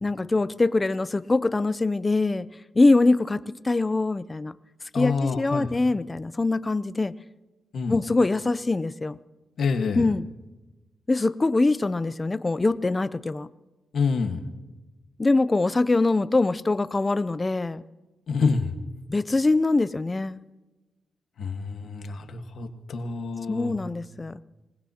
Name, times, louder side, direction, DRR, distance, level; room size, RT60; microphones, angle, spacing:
voice 1, 0.0-2.5 2.7-4.5 4.9-7.1 7.9-9.2 10.0-10.3 11.1-13.5 15.2-17.8 19.1-20.4 23.5-24.4, left 3 dB, 20° left, 15 dB, 0.5 m, -23 dB
voice 2, 4.9-5.7 7.7-8.0 9.6-10.0 13.9-14.4 18.3-18.7 21.4-23.7, left 4 dB, 70° left, 6 dB, 1.4 m, -27 dB
26.0 x 19.0 x 2.8 m, 1.1 s
wide cardioid pair, 125°, 0 cm